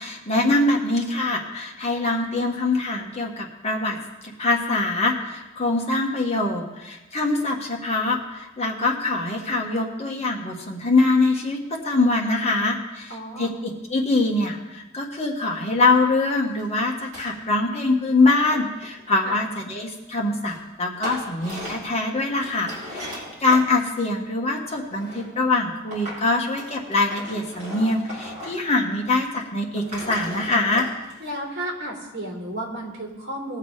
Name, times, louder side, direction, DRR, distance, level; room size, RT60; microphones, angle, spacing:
voice 1, 0.0-4.0 4.4-30.9, left 2 dB, 30° left, 0 dB, 1.6 m, -23 dB
voice 2, 13.1-13.5 19.2-19.4 31.2-33.6, right 1 dB, 55° right, -1 dB, 3.5 m, -32 dB
sound 1, 16.6-16.7 16.9-17.3 18.4-19.6 20.5-20.6 20.9-22.0 22.3-23.7 24.6-25.3 25.9-26.2 26.6-28.7 29.0-29.1 29.6-31.4, left 1 dB, 35° right, 4.0 m, -37 dB
19.5 x 6.6 x 4.9 m, 1.1 s
head